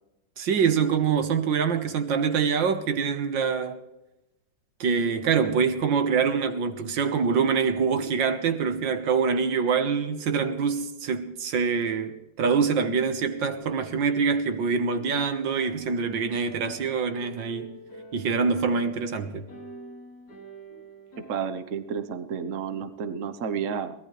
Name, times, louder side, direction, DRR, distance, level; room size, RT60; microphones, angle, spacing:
voice 1, 0.4-3.8 4.8-17.8 18.1-19.5, right 6 dB, 85° right, 2.0 m, -25 dB
sound 1, 13.6-21.4, right 1 dB, 55° left, 3.1 m, -46 dB
voice 2, 21.3-23.9, right 7 dB, 50° right, 1.3 m, -31 dB
23.0 x 18.5 x 3.3 m
omnidirectional pair, 2.0 m